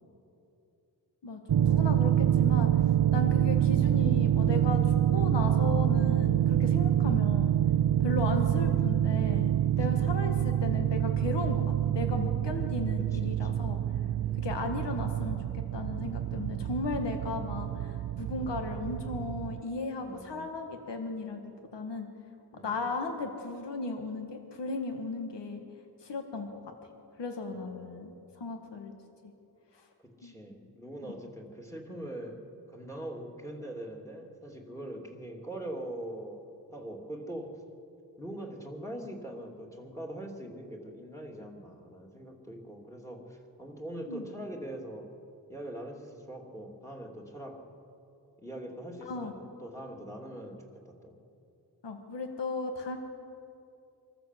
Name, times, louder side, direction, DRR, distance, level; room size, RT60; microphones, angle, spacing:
voice 1, 1.2-2.7 3.1-7.5 8.0-13.8 14.4-21.4 21.7-22.1 22.5-25.6 26.0-26.6 27.2-28.1 28.4-28.9 30.2-30.3 31.0-31.1 44.1-44.2 49.0-49.3 51.8-53.0, left 3 dB, 85° left, 4 dB, 1.7 m, -36 dB
sound 1, 1.5-19.6, right 11 dB, 60° right, 0.5 m, -26 dB
voice 2, 13.1-13.6 14.2-14.5 20.0-20.5 22.5-22.9 27.5-28.1 30.2-32.4 32.7-36.4 36.7-37.5 38.2-45.1 45.5-47.6 48.4-51.1, right 1 dB, 5° left, 2 dB, 2.7 m, -42 dB
25.0 x 14.0 x 7.6 m, 2.8 s
wide cardioid pair, 95°, 41 cm